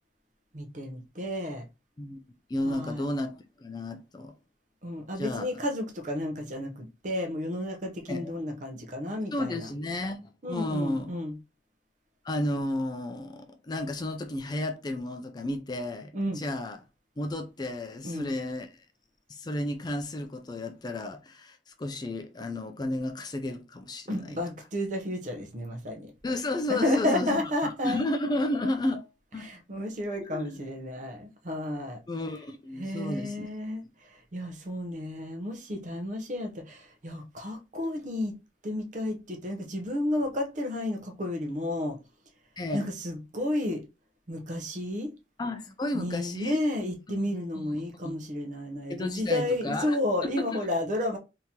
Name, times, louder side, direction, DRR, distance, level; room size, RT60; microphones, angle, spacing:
voice 1, 0.5-1.7 2.6-3.0 4.8-9.7 10.4-11.3 16.1-16.4 18.0-18.3 24.1-26.1 26.7-28.0 29.4-32.0 32.8-38.3 38.6-42.0 42.7-43.8 44.3-45.1 45.9-51.2, left 1 dB, 45° right, 0.7 m, -32 dB
voice 2, 2.5-4.3 5.2-5.5 8.1-8.3 9.3-11.2 12.2-16.8 17.2-18.8 19.3-24.4 26.2-29.1 29.3-29.5 30.2-30.6 32.1-33.5 42.6-42.8 45.4-46.6 47.2-48.3 48.9-50.0 50.2-50.6, left 1 dB, 25° left, 0.4 m, -32 dB
3.7 x 2.8 x 2.8 m
head